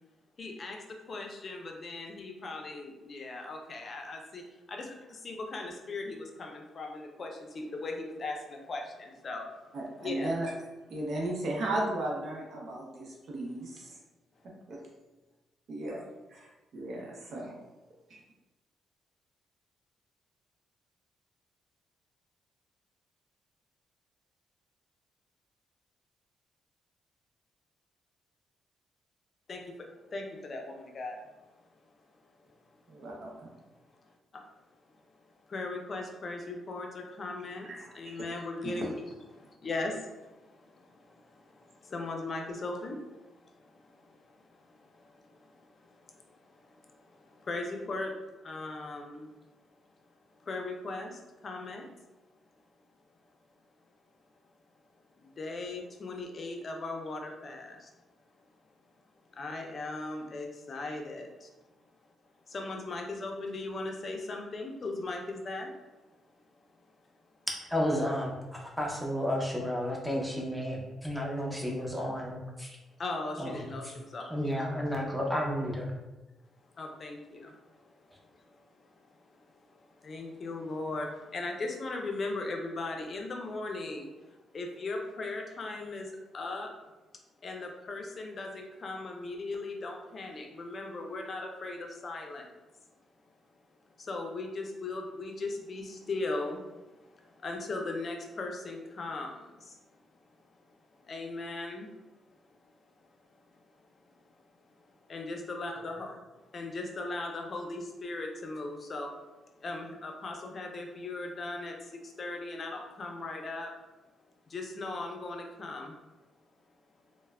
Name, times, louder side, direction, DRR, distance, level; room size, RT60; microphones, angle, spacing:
voice 1, 0.4-4.4 4.7-9.5 10.0-10.3 29.5-29.7 30.1-31.3 34.3-34.4 35.4-37.7 37.9-38.9 39.3-48.1 48.4-49.3 50.4-51.9 55.2-57.9 59.3-61.5 62.5-65.7 73.0-74.6 76.7-86.7 87.4-92.5 94.0-99.8 101.0-101.9 104.1-104.2 105.1-109.1 109.6-113.7 114.5-115.9, left 2 dB, 45° left, 2 dB, 0.5 m, -39 dB
voice 2, 9.7-10.5 10.9-14.0 14.7-14.8 15.7-16.0 16.3-17.6 18.1-18.2 32.9-33.5 37.7-37.9 38.6-38.8, right 1 dB, 65° right, -2 dB, 0.6 m, -35 dB
voice 3, 67.7-72.7 73.4-73.9 74.3-75.9, equal, 5° right, -2 dB, 0.7 m, -32 dB
3.1 x 2.1 x 2.3 m, 1.1 s
cardioid pair, 80°, 0 cm